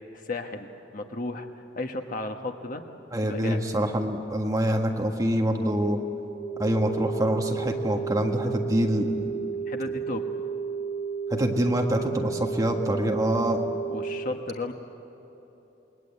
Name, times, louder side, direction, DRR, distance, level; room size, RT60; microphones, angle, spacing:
voice 1, 0.1-0.7 0.9-1.5 1.7-2.8 3.3-3.6 9.7-10.2 13.9-14.7, left 2 dB, 50° left, 5 dB, 1.3 m, -33 dB
voice 2, 3.1-6.0 6.6-9.3 11.3-13.6, equal, 20° right, 2 dB, 1.7 m, -25 dB
sound 1, 6.3-14.2, right 6 dB, 15° left, 1.8 m, -32 dB
28.5 x 21.5 x 8.4 m, 3.0 s
head